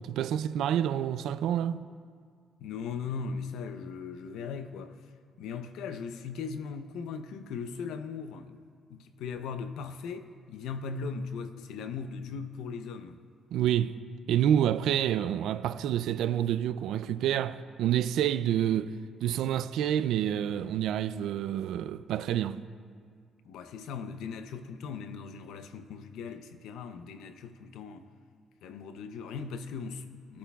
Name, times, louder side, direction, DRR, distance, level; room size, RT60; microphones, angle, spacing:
voice 1, 0.0-1.8 13.5-14.0 14.3-18.9 19.2-22.6, right 10 dB, 80° right, 0.3 m, -28 dB
voice 2, 2.6-5.0 5.4-8.6 8.9-13.2 23.4-28.1 28.6-30.4, left 5 dB, 85° left, 0.6 m, -39 dB
19.5 x 8.4 x 2.3 m
cardioid pair, 90°, 0 cm